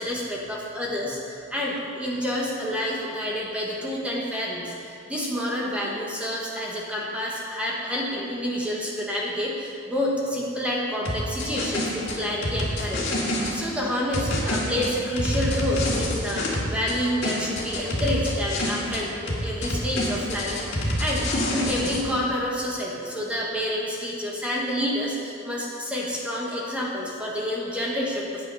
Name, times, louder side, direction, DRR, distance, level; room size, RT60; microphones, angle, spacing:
voice 1, 0.0-28.4, equal, 5° right, -4 dB, 1.2 m, -29 dB
sound 1, 11.0-13.5 14.1-17.0 17.2-19.0 19.3-22.0, left 1 dB, 55° left, 2.0 m, -27 dB
9.5 x 8.7 x 5.4 m, 2.5 s
head